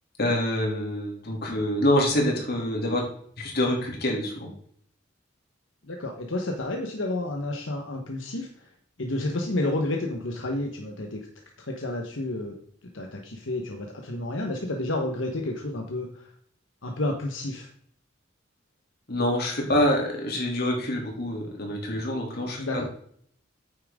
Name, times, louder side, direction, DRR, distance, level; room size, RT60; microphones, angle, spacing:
voice 1, 0.2-3.1 3.4-4.5 19.1-22.9, left 1 dB, 55° left, 0 dB, 2.9 m, -26 dB
voice 2, 5.8-8.7 9.0-11.3 11.6-12.6 12.9-16.3 16.8-17.7 22.6-22.8, left 2 dB, 80° left, 2 dB, 1.3 m, -30 dB
9.0 x 8.6 x 3.7 m, 0.62 s
head